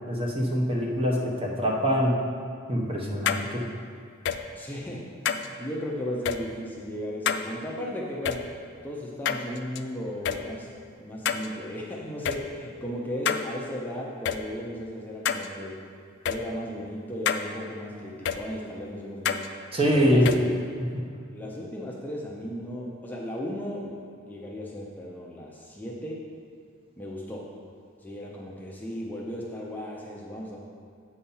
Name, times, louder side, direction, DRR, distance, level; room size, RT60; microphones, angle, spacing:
voice 1, 0.1-2.2 2.7-3.6 19.7-20.3 20.9-21.1, equal, 30° right, -1 dB, 1.1 m, -24 dB
sound 1, 3.3-3.4 4.3-4.4 5.3-5.5 6.3-6.4 7.3-7.4 8.3-8.4 9.3-9.8 10.3-10.4 11.3-11.5 12.3-12.4 13.3-13.4 14.3-14.4 15.3-15.5 16.3-16.4 17.3-17.4 18.3-18.4 19.3-19.5 20.3-20.4, left 8 dB, 65° left, 0.4 m, -26 dB
voice 2, 4.6-8.4 8.8-10.7 11.0-15.8 16.2-19.4 19.9-20.6 21.3-24.0 24.3-26.2 27.0-27.5 28.0-30.6, equal, 10° left, -3 dB, 0.7 m, -36 dB
8.6 x 4.3 x 5.5 m, 2.4 s
head